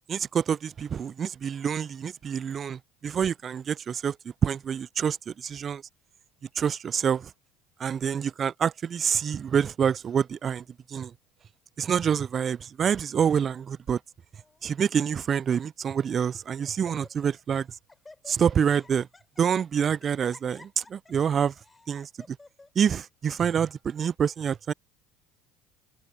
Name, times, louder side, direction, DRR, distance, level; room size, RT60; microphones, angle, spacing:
voice 1, 0.1-4.2 4.4-5.8 6.6-7.3 7.8-11.1 11.8-14.0 14.6-17.7 18.3-19.1 19.4-21.5 21.9-22.4 22.8-24.7, right 7 dB, 40° right, 0.3 m, -27 dB
Laughter, 14.3-14.7 15.5-15.6 16.1-16.4 16.6-17.4 17.7-22.7, left 2 dB, 15° left, 6.8 m, -53 dB
hypercardioid pair, 70°, 0 cm